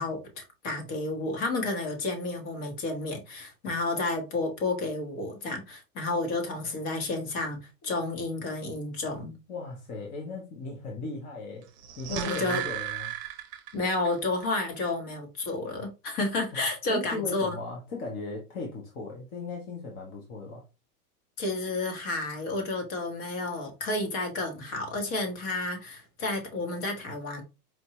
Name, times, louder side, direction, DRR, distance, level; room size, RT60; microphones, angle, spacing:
voice 1, 0.0-7.6 7.8-9.4 12.1-12.6 13.7-17.5 21.4-27.4, left 2 dB, 40° left, 1.3 m, -31 dB
voice 2, 9.5-11.7 12.0-13.1 16.5-16.6 16.9-20.6, left 3 dB, 20° left, 0.5 m, -37 dB
sound 1, 11.7-14.1 14.4-14.5, right 11 dB, 40° right, 0.8 m, -35 dB
4.5 x 2.5 x 2.8 m
supercardioid pair, 150°, 46 cm